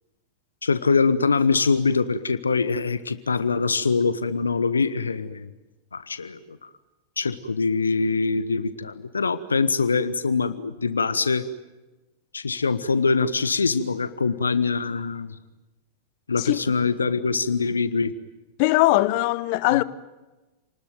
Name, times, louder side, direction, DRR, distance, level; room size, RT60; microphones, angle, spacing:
voice 1, 0.6-5.5 5.9-6.4 7.2-11.4 12.3-15.3 16.3-18.1 19.7-19.8, left 4 dB, 75° left, 1.1 m, -23 dB
voice 2, 18.6-19.8, left 18 dB, 45° left, 1.0 m, -20 dB
29.0 x 20.5 x 9.2 m
figure-of-eight pair, 90°, 0 cm